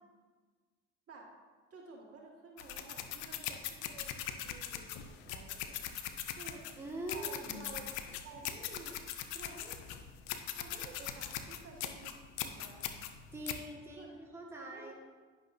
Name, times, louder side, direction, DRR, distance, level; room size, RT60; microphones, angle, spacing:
voice 1, 1.7-5.9 6.3-6.6 7.1-7.8 8.2-9.0 9.3-9.8 10.5-12.1 12.4-12.9 14.0-14.1 14.5-14.9, right 4 dB, 45° right, -2 dB, 1.7 m, -52 dB
sound 1, 2.6-13.6, left 10 dB, 80° left, 0.6 m, -41 dB
voice 2, 6.8-7.6 13.3-14.9, right 1 dB, 10° right, -3 dB, 1.6 m, -43 dB
9.9 x 5.8 x 2.6 m, 1.4 s
hypercardioid pair, 60°, 33 cm